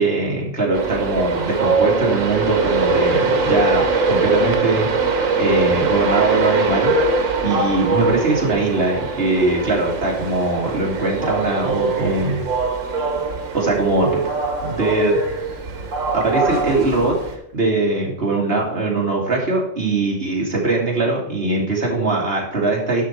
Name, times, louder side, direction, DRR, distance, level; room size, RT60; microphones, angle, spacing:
voice 1, 0.0-4.9 5.4-6.9 7.4-12.4 13.5-14.2 14.6-15.2 16.1-17.2 17.5-23.0, right 2 dB, 50° right, -2 dB, 2.6 m, -21 dB
Train, 0.7-17.3, right 3 dB, 85° right, 1.6 m, -22 dB
11.0 x 6.3 x 4.5 m, 0.72 s
omnidirectional pair, 1.3 m